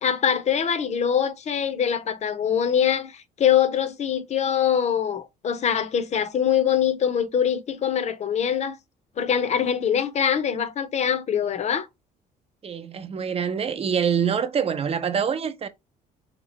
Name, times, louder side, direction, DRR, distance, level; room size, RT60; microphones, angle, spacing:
voice 1, 0.0-8.8 9.2-11.9, left 8 dB, 40° left, 0.8 m, -23 dB
voice 2, 12.6-15.7, right 7 dB, 35° right, 0.7 m, -25 dB
3.6 x 3.0 x 4.1 m
cardioid pair, 110°, 17 cm